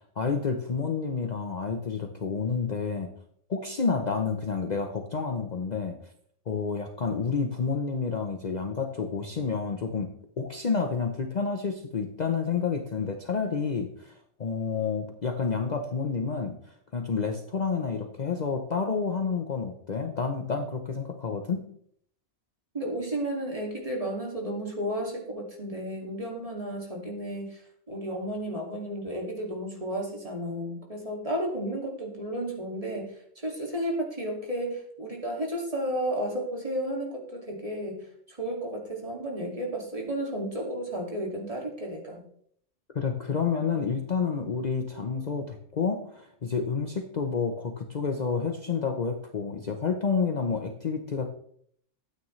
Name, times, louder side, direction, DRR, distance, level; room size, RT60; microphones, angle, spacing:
voice 1, 0.2-3.1 3.5-6.0 6.5-10.1 10.4-21.6 42.9-51.3, left 5 dB, 40° left, 4 dB, 0.8 m, -29 dB
voice 2, 22.7-27.6 27.9-38.0 38.3-42.2, right 1 dB, 30° right, -1 dB, 2.4 m, -33 dB
12.5 x 8.9 x 3.2 m, 0.65 s
omnidirectional pair, 1.2 m